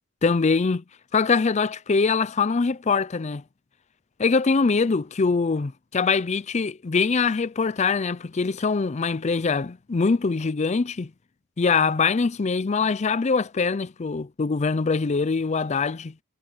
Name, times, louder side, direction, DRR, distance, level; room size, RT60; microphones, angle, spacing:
voice 1, 0.2-0.8 1.1-3.4 4.2-11.1 11.6-16.1, left 4 dB, 35° left, 0.5 m, -23 dB
head